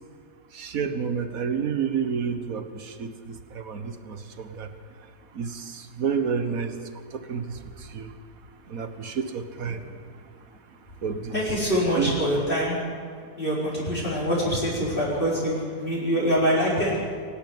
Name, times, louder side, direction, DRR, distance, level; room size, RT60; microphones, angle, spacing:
voice 1, 0.5-4.7 5.3-6.7 7.1-8.1 8.7-9.8 11.0-11.4 12.0-12.4, right 6 dB, 65° right, 9 dB, 1.7 m, -30 dB
voice 2, 11.3-12.7 13.4-17.0, equal, 35° left, -7 dB, 4.8 m, -24 dB
22.5 x 12.0 x 9.5 m, 2.1 s
omnidirectional pair, 1.6 m